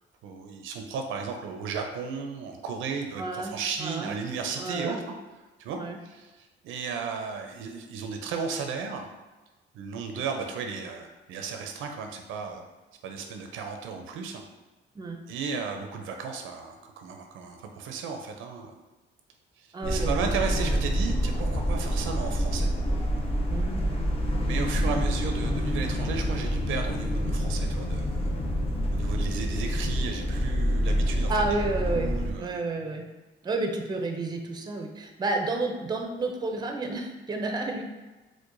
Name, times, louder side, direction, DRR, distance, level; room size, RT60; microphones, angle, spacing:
voice 1, 0.2-5.1 5.6-9.1 9.7-12.6 13.0-14.4 15.3-18.7 19.8-22.7 24.4-28.3 28.9-31.5 31.9-32.6, right 5 dB, 85° right, 4 dB, 0.5 m, -34 dB
voice 2, 3.2-3.5 3.8-4.1 4.6-5.0 5.8-6.0 15.0-15.2 19.7-20.2 23.5-23.8 31.3-32.1 32.4-33.1 33.4-37.8, right 3 dB, 20° right, 3 dB, 0.5 m, -30 dB
sound 1, 19.8-32.3, equal, 30° left, 0.6 m, -27 dB
4.5 x 2.1 x 2.5 m, 1.2 s
cardioid pair, 90°, 20 cm